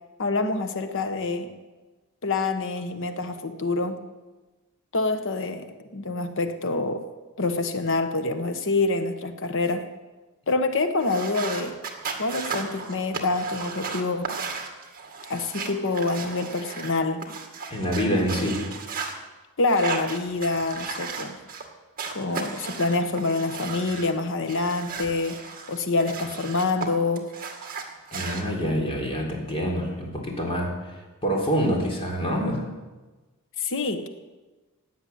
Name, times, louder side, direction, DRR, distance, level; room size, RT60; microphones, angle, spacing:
voice 1, 0.2-1.5 2.2-4.0 4.9-7.1 7.4-9.9 10.5-11.8 12.2-14.4 15.3-17.2 19.6-21.4 22.1-25.4 25.7-27.3 33.6-34.1, left 3 dB, 60° left, 8 dB, 1.2 m, -26 dB
sound 1, 11.0-16.9 17.2-19.1 19.6-21.7 22.0-24.1 24.5-26.9 27.2-28.4, right 5 dB, 40° right, 2.1 m, -35 dB
voice 2, 17.7-18.6 28.1-30.7 31.2-32.6, equal, 25° left, 0 dB, 3.7 m, -26 dB
15.5 x 10.0 x 8.6 m, 1.2 s
head